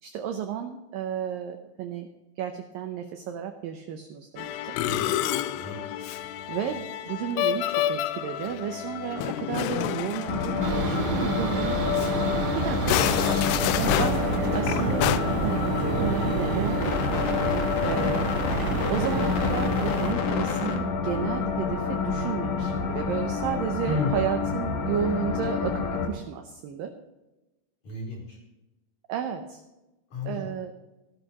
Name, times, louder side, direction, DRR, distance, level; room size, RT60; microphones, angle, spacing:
voice 1, 0.0-2.1 2.4-4.9 6.5-11.8 12.5-13.4 13.8-14.3 14.5-15.1 15.4-18.3 18.9-26.9 29.1-29.6 30.2-30.7, right 9 dB, 85° right, 6 dB, 2.0 m, -32 dB
Musical instrument, 4.4-11.2 11.5-11.7 12.0-12.1 12.7-15.2, left 12 dB, 85° left, 2.4 m, -29 dB
voice 2, 4.7-5.2 5.5-6.1 23.9-24.3 27.8-28.4 30.1-30.5, left 2 dB, 45° left, -3 dB, 5.3 m, -32 dB
sound 1, 10.3-26.1, left 5 dB, 65° left, 2.3 m, -28 dB
sound 2, 10.6-20.1, right 4 dB, 70° right, 3.0 m, -29 dB
15.5 x 13.0 x 3.0 m, 1.0 s
omnidirectional pair, 5.1 m